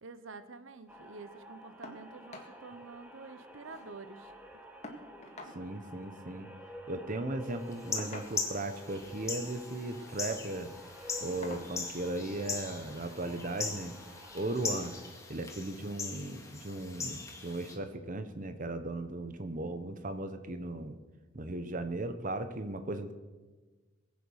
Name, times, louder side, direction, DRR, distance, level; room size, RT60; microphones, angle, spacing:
voice 1, 0.0-4.3 5.5-5.7, right 4 dB, 85° right, 12 dB, 0.9 m, -48 dB
sound 1, 0.9-15.1, left 1 dB, 10° right, 1.3 m, -51 dB
sound 2, 1.8-2.0 2.3-2.5 2.9-3.0 3.3-4.0 4.8-5.6 6.8-7.0 8.0-8.6 9.7-10.0 10.5-10.6 11.4-11.7 13.0-13.1 13.6-13.7, left 2 dB, 35° left, 2.0 m, -47 dB
voice 2, 5.5-6.5 6.9-10.7 11.2-13.9 14.3-14.9 15.3-21.0 21.3-23.1, right 2 dB, 40° right, 9 dB, 0.9 m, -37 dB
sound 3, 7.7-17.8, left 4 dB, 15° left, 2.0 m, -40 dB
21.0 x 8.5 x 6.4 m, 1.3 s
head